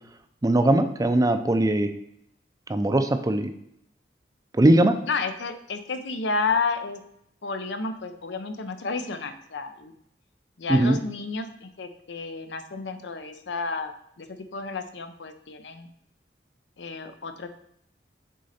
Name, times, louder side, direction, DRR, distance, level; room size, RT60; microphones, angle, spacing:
voice 1, 0.4-1.9 2.7-3.5 4.5-5.0 10.7-11.0, right 1 dB, 20° right, 8 dB, 0.4 m, -20 dB
voice 2, 5.1-7.0 7.4-9.9 10.6-15.9 16.8-17.5, left 4 dB, 90° left, 8 dB, 0.7 m, -31 dB
6.4 x 3.8 x 4.2 m, 0.74 s
head